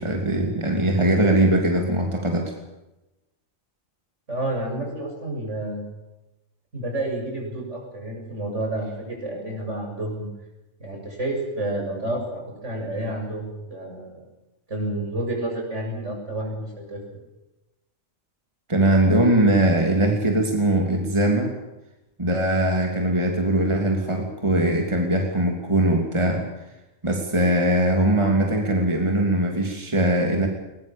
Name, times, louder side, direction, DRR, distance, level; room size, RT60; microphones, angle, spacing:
voice 1, 0.0-2.5 18.7-21.5 22.2-26.5 27.0-30.5, right 1 dB, 20° right, 2 dB, 3.0 m, -21 dB
voice 2, 4.3-5.8 6.7-10.3 10.8-14.2 14.7-17.0, right 1 dB, 60° right, 1 dB, 7.8 m, -30 dB
21.5 x 21.0 x 7.3 m, 0.98 s
omnidirectional pair, 1.4 m